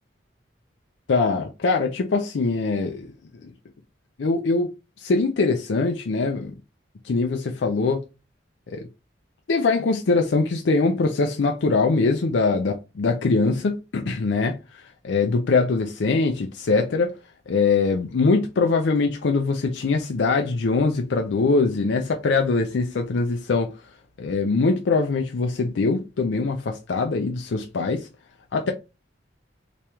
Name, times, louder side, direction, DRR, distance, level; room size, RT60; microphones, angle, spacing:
voice 1, 1.1-3.1 3.4-3.5 4.2-4.7 5.0-6.5 7.0-8.0 8.7-8.9 9.5-17.1 17.5-23.7 24.2-28.1 28.5-28.7, left 3 dB, 75° left, 0.5 m, -22 dB
3.0 x 2.9 x 3.4 m
head